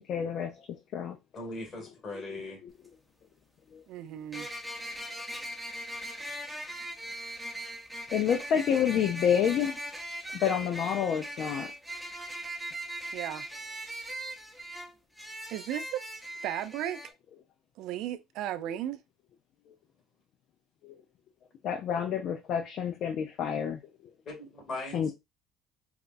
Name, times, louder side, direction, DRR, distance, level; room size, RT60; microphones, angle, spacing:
voice 1, 0.1-1.2 2.6-2.7 3.7-3.8 8.1-9.8 10.3-11.7 20.8-20.9 21.6-23.8 24.9-25.1, left 8 dB, 55° left, 0.5 m, -29 dB
voice 2, 1.3-2.6 24.2-25.1, left 2 dB, 40° left, 2.5 m, -39 dB
sound 1, 2.7-2.8 4.3-17.1, right 1 dB, ahead, 0.7 m, -40 dB
voice 3, 3.9-4.5 13.1-13.4 15.5-16.0 16.4-17.0 17.8-19.0, right 12 dB, 75° right, 0.4 m, -35 dB
4.8 x 2.4 x 2.5 m
cardioid pair, 120°, 0 cm